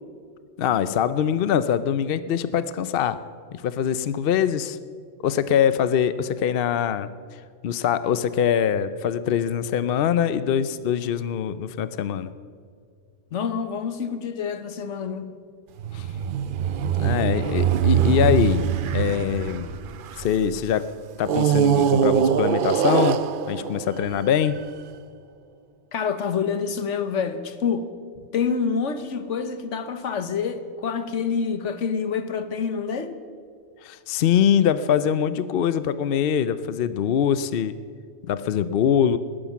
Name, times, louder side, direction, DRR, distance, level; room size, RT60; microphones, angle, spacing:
voice 1, 0.6-3.2 3.6-4.8 5.2-7.1 7.6-12.3 15.9-16.0 17.0-18.6 18.9-19.7 20.2-20.9 21.2-23.2 23.5-24.6 33.8-37.7 38.3-39.2, left 8 dB, 60° left, 14 dB, 0.7 m, -23 dB
voice 2, 13.3-15.3 25.9-27.9 28.3-33.1, left 6 dB, 80° left, 11 dB, 1.3 m, -27 dB
sound 1, 15.8-20.5 21.2-24.6, right 8 dB, 55° right, 0.7 m, -23 dB
19.5 x 10.0 x 7.1 m, 2.1 s
omnidirectional pair, 1.2 m